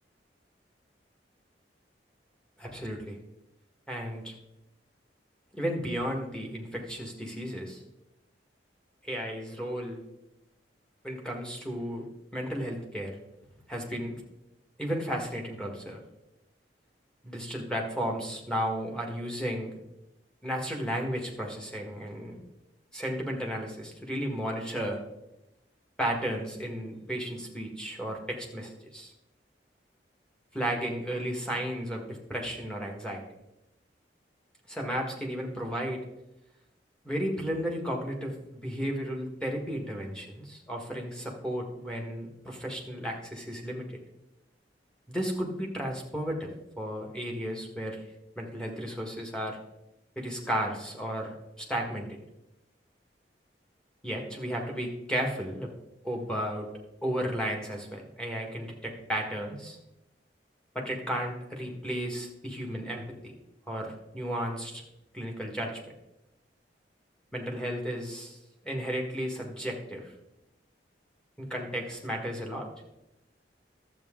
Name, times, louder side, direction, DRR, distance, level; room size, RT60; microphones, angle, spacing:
voice 1, 2.6-3.2 3.9-4.3 5.5-7.8 9.0-10.0 11.0-12.1 12.3-13.1 13.7-14.2 14.8-16.0 17.2-19.7 20.4-22.4 22.9-25.0 26.0-29.1 30.5-33.2 34.7-36.0 37.0-44.0 45.1-46.5 46.8-48.0 48.4-49.6 50.1-52.2 54.0-55.7 56.0-56.7 57.0-59.8 60.7-63.0 63.7-64.8 65.1-65.7 67.3-68.4 68.6-70.1 71.4-72.7, equal, 5° left, 0 dB, 1.5 m, -33 dB
12.0 x 7.9 x 3.7 m, 0.89 s
head